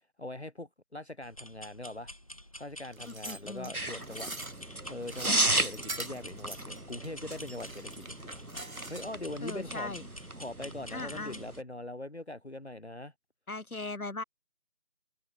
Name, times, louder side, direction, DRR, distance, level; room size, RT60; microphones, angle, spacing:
voice 1, 0.2-2.1 2.5-4.3 4.9-8.4 8.9-9.9 10.4-13.1, left 1 dB, 50° left, 1.1 m, -42 dB
sound 1, 1.2-11.6, equal, 25° left, 3.3 m, -49 dB
sound 2, 2.9-9.3 9.7-9.8, right 2 dB, 70° right, 2.3 m, -44 dB
voice 2, 3.0-3.7 9.4-10.1 10.9-11.4 13.5-14.2, left 2 dB, 80° left, 1.7 m, -39 dB
sound 3, 3.7-11.6, right 1 dB, 85° right, 3.5 m, -35 dB
figure-of-eight pair, 175°, 43 cm